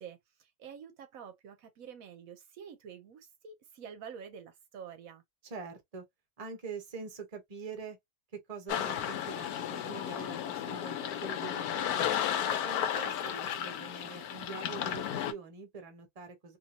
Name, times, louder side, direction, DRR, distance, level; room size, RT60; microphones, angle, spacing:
voice 1, 0.0-5.2, right 7 dB, 75° right, 1.0 m, -48 dB
voice 2, 5.4-6.0 6.4-8.0 8.3-12.1 12.5-16.6, right 4 dB, 30° right, 0.9 m, -44 dB
sound 1, 8.7-15.3, left 10 dB, 90° left, 1.1 m, -33 dB
2.8 x 2.6 x 2.7 m
omnidirectional pair, 1.5 m